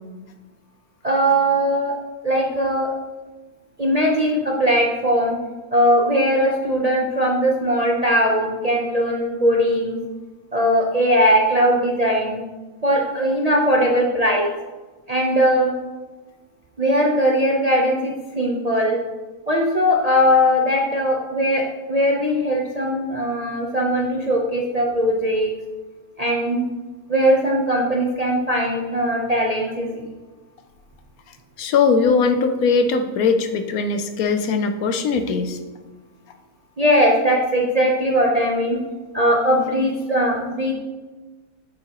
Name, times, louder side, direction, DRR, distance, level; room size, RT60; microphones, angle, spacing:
voice 1, 1.0-1.9 2.2-2.9 3.8-5.4 5.7-10.0 10.5-12.4 12.8-14.5 15.1-15.7 16.8-19.0 19.5-25.5 26.2-26.7 27.1-30.1 36.8-38.8 39.1-40.7, equal, 35° right, -2 dB, 0.6 m, -19 dB
voice 2, 31.6-35.6, left 5 dB, 70° left, 8 dB, 1.0 m, -20 dB
7.6 x 7.1 x 2.9 m, 1.3 s
omnidirectional pair, 1.7 m